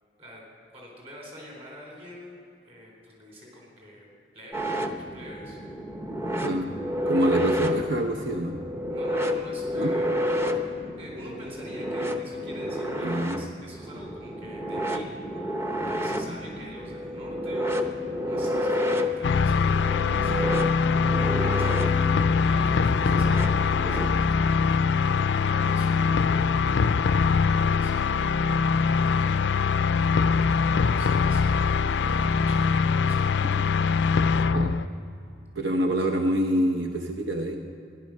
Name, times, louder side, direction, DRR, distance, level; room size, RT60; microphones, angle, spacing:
voice 1, 0.7-4.1 4.3-5.6 8.9-10.2 11.0-15.2 15.9-17.7 18.2-20.9 21.2-24.8 25.4-26.7 27.2-28.3 28.6-29.9 30.3-31.7 32.0-33.3 35.5-36.0, equal, 35° right, -1 dB, 3.8 m, -45 dB
sound 1, 4.5-24.1, left 1 dB, 15° right, 0.7 m, -30 dB
voice 2, 7.1-8.6 9.8-9.9 13.0-13.4 33.6-33.7 34.5-34.7 35.6-37.6, right 1 dB, 80° right, 3 dB, 0.8 m, -26 dB
sound 2, 19.2-34.8, left 5 dB, 70° left, 0.4 m, -23 dB
14.0 x 11.0 x 6.4 m, 2.6 s
head